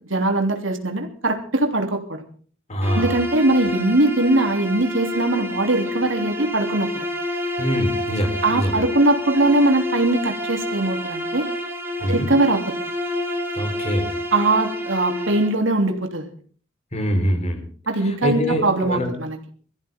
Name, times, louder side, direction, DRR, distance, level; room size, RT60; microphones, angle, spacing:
voice 1, 0.1-2.2 2.9-7.1 8.4-11.5 12.1-12.8 14.3-16.3 17.9-19.4, right 2 dB, 65° right, 5 dB, 3.1 m, -21 dB
voice 2, 2.7-3.2 7.6-8.9 12.0-12.3 13.5-14.1 16.9-17.6 18.0-19.1, equal, 35° left, 5 dB, 4.2 m, -24 dB
Bowed string instrument, 2.8-15.6, left 1 dB, 10° right, 3.2 m, -28 dB
23.0 x 15.0 x 3.7 m, 0.43 s
head